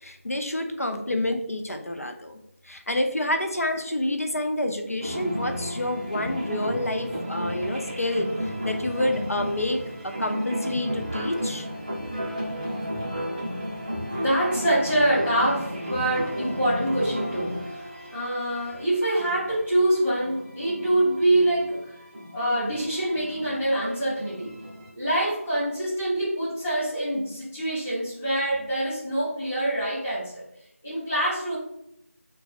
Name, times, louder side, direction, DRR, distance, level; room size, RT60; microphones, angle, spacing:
voice 1, 0.0-2.4 2.6-11.7, left 1 dB, 80° left, 6 dB, 0.5 m, -28 dB
sound 1, 5.0-24.9, equal, 30° right, 0.6 m, -33 dB
voice 2, 14.1-22.0 22.3-24.5 24.9-30.4 30.8-31.6, right 1 dB, 5° left, -13 dB, 0.3 m, -25 dB
4.0 x 2.3 x 2.4 m, 0.81 s
figure-of-eight pair, 165°, 8 cm